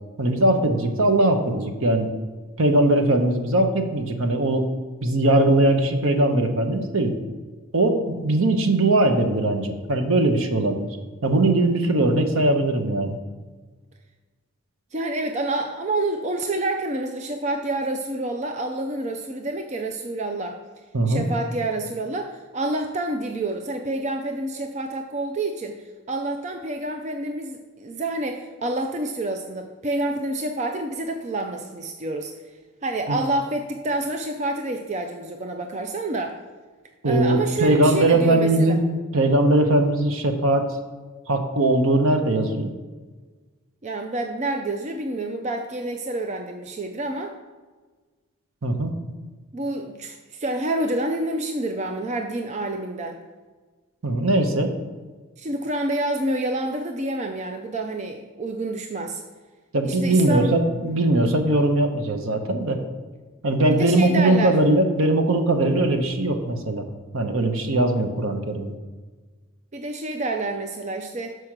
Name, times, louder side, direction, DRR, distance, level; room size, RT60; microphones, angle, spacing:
voice 1, 0.2-2.1 2.6-4.7 5.0-7.2 7.7-11.0 11.2-13.2 20.9-21.3 33.1-33.2 37.0-38.8 39.1-40.7 41.3-42.7 48.6-48.9 54.0-54.7 59.7-62.8 63.4-66.8 67.1-68.7, right 2 dB, 65° right, 6 dB, 0.8 m, -20 dB
voice 2, 14.9-20.6 21.1-32.3 32.8-36.4 37.0-38.8 43.8-47.3 49.5-53.2 55.4-59.2 59.8-60.5 63.7-64.6 69.7-71.4, right 2 dB, 30° right, 5 dB, 0.4 m, -28 dB
6.5 x 4.7 x 5.9 m, 1.4 s
head